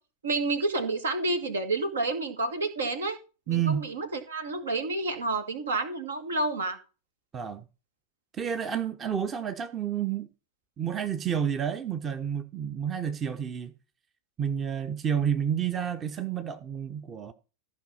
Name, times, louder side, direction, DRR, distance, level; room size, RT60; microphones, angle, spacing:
voice 1, 0.2-3.2 3.5-6.8, right 2 dB, 70° right, 1.9 m, -29 dB
voice 2, 3.5-3.9 7.3-7.6 8.3-10.3 10.8-13.7 14.4-17.3, right 8 dB, 25° right, 0.9 m, -30 dB
14.5 x 5.5 x 5.5 m
figure-of-eight pair, 90°, 0 cm